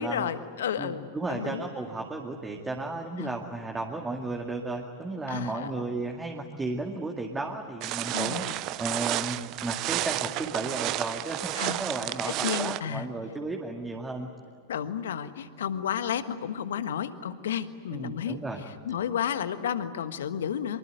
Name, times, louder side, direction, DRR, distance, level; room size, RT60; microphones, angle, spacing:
voice 1, 0.0-1.6 3.2-3.3 5.3-5.8 8.1-8.6 11.5-11.8 12.4-13.1 14.7-20.8, left 9 dB, 70° left, 11 dB, 1.4 m, -32 dB
voice 2, 0.8-14.3 17.9-18.6, right 2 dB, 15° right, 1 dB, 2.3 m, -34 dB
sound 1, 7.8-12.8, right 16 dB, 45° right, 0.7 m, -31 dB
24.5 x 23.5 x 9.4 m, 2.3 s
figure-of-eight pair, 95°, 0 cm